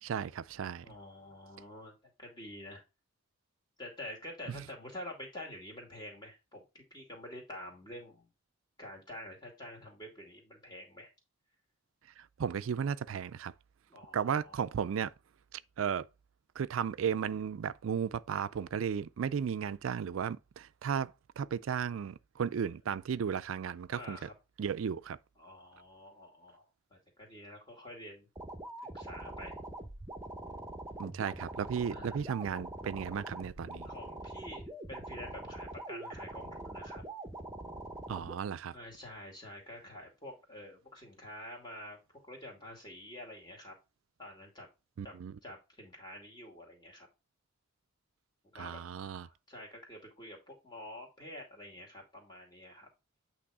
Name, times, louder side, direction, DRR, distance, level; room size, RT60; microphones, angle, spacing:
voice 1, 0.0-0.9 4.5-4.6 12.2-13.5 14.1-15.1 15.5-16.1 16.6-24.3 24.6-25.2 31.0-33.9 38.1-38.7 45.0-45.3 48.5-49.3, right 7 dB, 80° right, 0.4 m, -35 dB
voice 2, 0.8-1.9 2.2-2.8 3.8-8.3 8.8-11.1 13.9-14.6 23.9-24.3 25.4-26.7 26.9-28.3 28.9-29.6 31.9-32.2 33.8-37.0 38.7-43.7 44.2-44.7 45.0-45.2 45.4-47.1 48.5-48.8 49.2-52.9, left 1 dB, 20° left, 2.3 m, -48 dB
sound 1, 28.4-38.4, right 2 dB, 15° right, 0.8 m, -44 dB
8.6 x 3.1 x 4.8 m
head